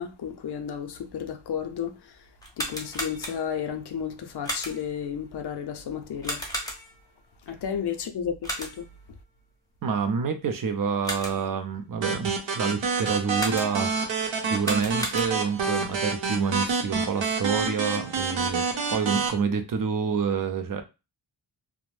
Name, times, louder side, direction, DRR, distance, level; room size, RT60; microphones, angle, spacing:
voice 1, 0.0-2.2 2.6-6.5 7.5-8.9, left 8 dB, 60° left, 0.5 m, -32 dB
sound 1, 2.4-3.7 4.4-5.0 6.2-7.1 8.4-9.0 10.8-11.6 13.3-14.0 14.5-15.6, equal, 10° left, 0.6 m, -35 dB
voice 2, 9.8-14.2 14.5-18.7 18.9-20.8, right 6 dB, 45° right, 0.5 m, -28 dB
sound 2, 12.0-19.3, right 4 dB, 75° right, 0.8 m, -28 dB
2.5 x 2.1 x 3.1 m
wide cardioid pair, 150°, 47 cm